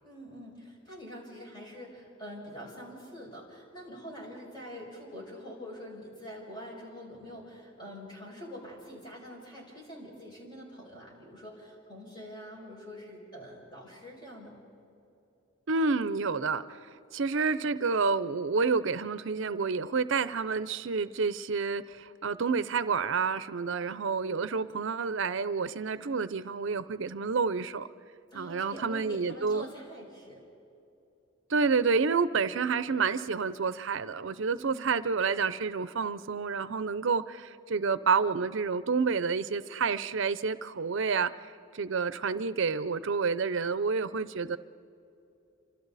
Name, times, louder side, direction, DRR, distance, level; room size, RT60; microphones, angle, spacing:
voice 1, 0.0-14.5 28.3-30.5 34.5-34.9, equal, 25° left, 6.3 m, -45 dB
voice 2, 15.7-27.9 28.3-29.7 31.5-44.6, right 5 dB, 70° right, 0.6 m, -29 dB
29.0 x 26.0 x 4.1 m
head